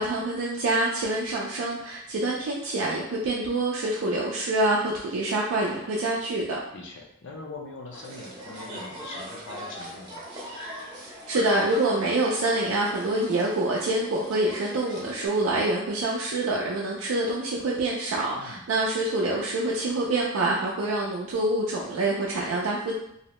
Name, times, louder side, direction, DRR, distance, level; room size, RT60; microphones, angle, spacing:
voice 1, 0.0-6.6 11.3-22.9, right 2 dB, 75° right, -4 dB, 0.4 m, -26 dB
voice 2, 6.7-10.3 18.3-18.6, left 3 dB, 60° left, 0 dB, 0.5 m, -42 dB
sound 1, 7.9-15.3, equal, 20° right, 0.7 m, -41 dB
2.6 x 2.1 x 2.9 m, 0.76 s
head